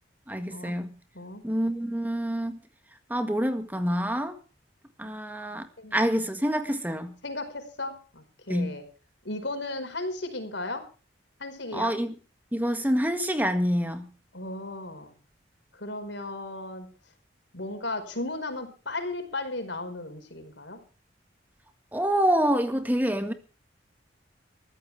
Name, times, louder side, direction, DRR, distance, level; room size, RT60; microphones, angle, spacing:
voice 1, 0.3-0.9 1.4-2.6 3.1-4.4 5.0-7.1 8.5-8.7 11.7-12.1 12.5-14.1 21.9-23.3, equal, 10° right, 1.8 m, -27 dB
voice 2, 7.2-8.8 9.3-10.9 11.4-11.9 14.3-15.1 15.7-16.9 17.5-20.8, left 2 dB, 75° left, 5.0 m, -35 dB
22.0 x 15.0 x 3.5 m
head